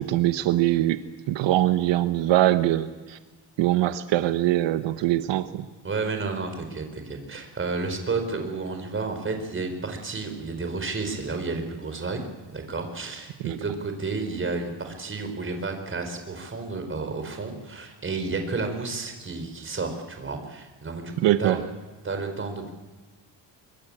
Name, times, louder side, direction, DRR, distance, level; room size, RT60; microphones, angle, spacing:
voice 1, 0.0-3.2 3.6-5.6 13.4-13.6 21.2-21.6, right 14 dB, 80° right, 11 dB, 1.1 m, -23 dB
voice 2, 5.8-21.6 22.0-22.7, right 3 dB, 30° right, 6 dB, 4.5 m, -31 dB
24.5 x 23.5 x 8.7 m, 1.3 s
cardioid pair, 135°, 43 cm